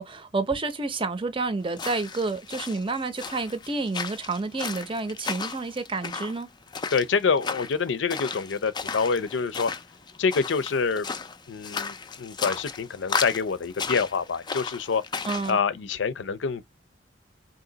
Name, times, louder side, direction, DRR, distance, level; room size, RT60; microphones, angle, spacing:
voice 1, 0.0-6.5 15.2-15.6, right 3 dB, 30° right, 0.7 m, -29 dB
sound 1, 1.7-15.5, left 5 dB, 25° left, 0.4 m, -35 dB
voice 2, 6.9-9.7 10.2-11.1 11.5-15.0 15.5-16.7, left 5 dB, 80° left, 0.5 m, -26 dB
3.9 x 2.8 x 3.9 m
head